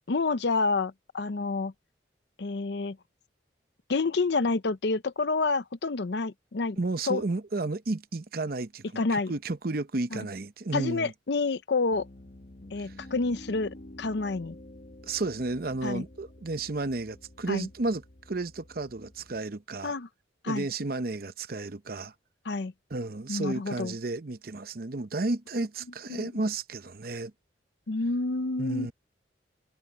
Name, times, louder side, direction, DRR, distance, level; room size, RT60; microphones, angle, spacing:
voice 1, 0.1-1.7 2.4-3.0 3.9-6.8 7.1-7.2 9.0-9.3 10.1-10.2 10.7-12.1 12.7-14.6 15.8-16.0 17.5-17.7 19.8-20.1 20.4-20.7 22.4-22.7 23.3-23.9 26.1-26.3 27.9-28.9, left 3 dB, 65° left, 0.6 m, -28 dB
voice 2, 6.8-11.1 12.8-12.9 15.1-18.0 18.3-19.9 20.5-22.1 22.9-27.3 28.6-28.9, right 2 dB, 50° right, 0.8 m, -32 dB
Piano, 11.9-19.4, left 1 dB, 45° left, 1.3 m, -49 dB
head